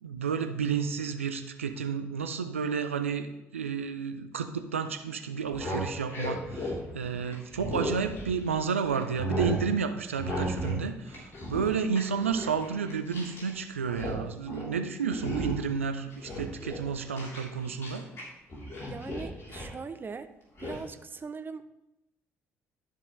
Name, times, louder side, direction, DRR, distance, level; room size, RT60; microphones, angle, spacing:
voice 1, 0.0-18.1, right 6 dB, 90° right, 8 dB, 0.5 m, -31 dB
sound 1, 5.4-8.6 8.9-9.6 10.2-10.8 11.1-13.5 13.8-14.2 14.5-14.7 15.1-15.7 16.1-18.2 18.5-19.7 20.6-20.8, equal, 40° left, 3.3 m, -35 dB
voice 2, 18.8-20.3 20.6-21.7, right 5 dB, 30° right, 11 dB, 0.6 m, -40 dB
12.0 x 5.3 x 3.2 m, 0.91 s
hypercardioid pair, 50°, 7 cm